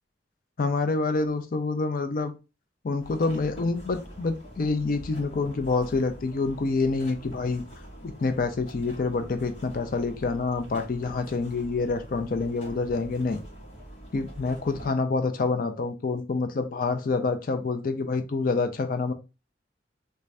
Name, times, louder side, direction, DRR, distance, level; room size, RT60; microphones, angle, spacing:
voice 1, 0.6-2.3 2.8-7.6 8.0-13.4 14.1-19.1, left 3 dB, 50° left, 8 dB, 0.4 m, -27 dB
sound 1, 3.0-14.9, equal, 80° left, 2.0 m, -45 dB
3.3 x 2.6 x 3.2 m, 0.29 s
head